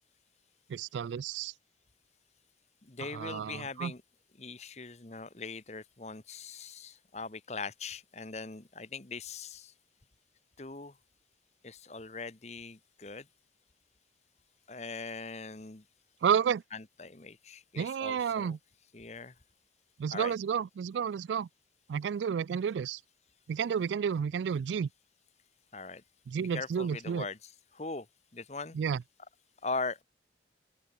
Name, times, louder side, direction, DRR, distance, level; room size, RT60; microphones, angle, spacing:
voice 1, 0.7-1.5 3.1-3.9 16.2-16.6 17.8-18.6 20.0-21.5 21.9-23.0 23.5-24.9 26.3-27.3 28.7-29.0, right 7 dB, 90° right, 0.3 m, -31 dB
voice 2, 2.8-4.0 4.4-9.7 10.6-10.9 11.6-13.3 14.7-15.8 16.7-18.6 18.9-19.3 20.1-20.3 25.7-26.0 26.3-28.1 28.3-28.8 29.6-30.0, left 4 dB, 40° left, 1.2 m, -41 dB
open air
head